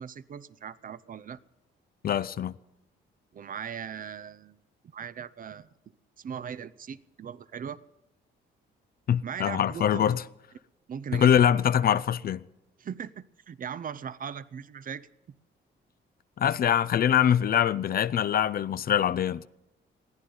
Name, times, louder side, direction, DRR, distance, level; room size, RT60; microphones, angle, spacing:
voice 1, 0.0-1.4 3.3-4.6 4.9-5.7 6.2-7.8 9.2-10.2 10.9-11.3 12.8-15.1, right 7 dB, 45° right, 0.6 m, -39 dB
voice 2, 2.0-2.6 9.1-10.2 11.1-12.4 16.4-19.5, left 9 dB, 50° left, 0.5 m, -23 dB
21.5 x 14.5 x 3.9 m
cardioid pair, 90°, 20 cm